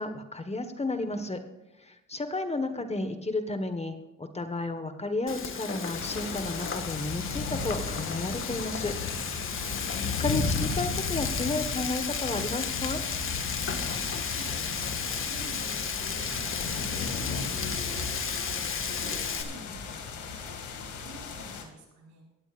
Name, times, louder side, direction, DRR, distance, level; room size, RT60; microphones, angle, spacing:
voice 1, 0.0-1.4 1.8-8.9 10.2-13.0, left 2 dB, 20° left, 8 dB, 1.5 m, -32 dB
Frying (food), 5.3-19.4, left 6 dB, 45° left, 1.8 m, -34 dB
sound 1, 5.9-21.6, left 4 dB, 80° left, 2.4 m, -35 dB
voice 2, 8.9-9.8 14.2-22.3, right 2 dB, 70° right, 0 dB, 5.1 m, -50 dB
17.5 x 13.0 x 2.6 m, 1.0 s
cardioid pair, 90°, 30 cm